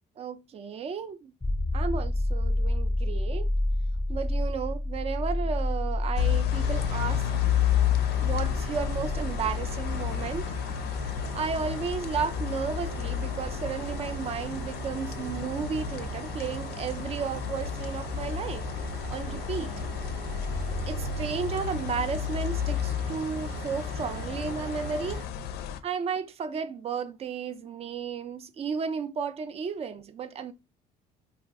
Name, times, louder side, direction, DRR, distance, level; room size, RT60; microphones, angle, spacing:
voice 1, 0.2-1.3 1.7-3.5 4.1-7.2 8.2-10.5 11.3-18.7 19.1-19.7 20.9-25.2 25.8-30.5, right 6 dB, 35° right, 0.3 m, -33 dB
sound 1, 1.4-14.9 17.6-17.7, left 1 dB, 5° left, 0.6 m, -31 dB
sound 2, 6.2-25.8, left 10 dB, 75° left, 0.4 m, -31 dB
sound 3, 6.5-25.2, right 5 dB, 70° right, 0.8 m, -40 dB
2.4 x 2.3 x 3.5 m
cardioid pair, 110°, 17 cm